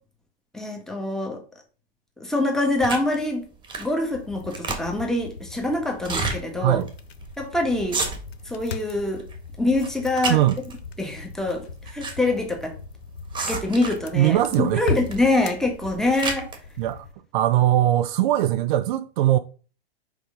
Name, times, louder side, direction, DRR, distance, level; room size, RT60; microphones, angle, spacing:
voice 1, 0.5-1.4 2.2-3.4 3.8-6.8 7.4-8.0 8.4-9.3 9.6-10.4 11.0-11.6 11.9-12.7 13.5-16.5, left 2 dB, ahead, 1.7 m, -25 dB
sound 1, 2.8-3.2 3.6-4.0 4.3-5.1 6.0-6.4 6.9-7.0 7.2-7.4 7.8-8.5 8.9-9.4 9.7-10.8 11.6-12.2 12.4-12.5 13.3-14.1 15.0-15.3 15.7-16.6, right 3 dB, 15° right, 1.7 m, -30 dB
sound 2, 4.1-17.1, left 5 dB, 85° left, 0.8 m, -38 dB
voice 2, 14.1-14.9 16.8-17.1 17.3-19.4, right 13 dB, 55° right, 0.6 m, -20 dB
5.1 x 5.0 x 5.1 m
hypercardioid pair, 105°, 30 cm